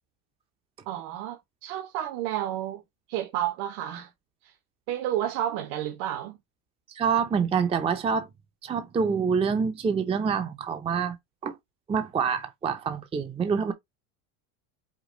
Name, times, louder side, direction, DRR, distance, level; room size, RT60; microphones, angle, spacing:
voice 1, 0.9-2.8 3.1-4.1 4.9-6.4, right 12 dB, 60° right, 1.1 m, -31 dB
voice 2, 6.9-8.3 8.6-11.2 11.4-11.5 11.9-13.7, right 6 dB, 15° right, 0.5 m, -26 dB
5.1 x 2.4 x 3.8 m
supercardioid pair, 120°, 47 cm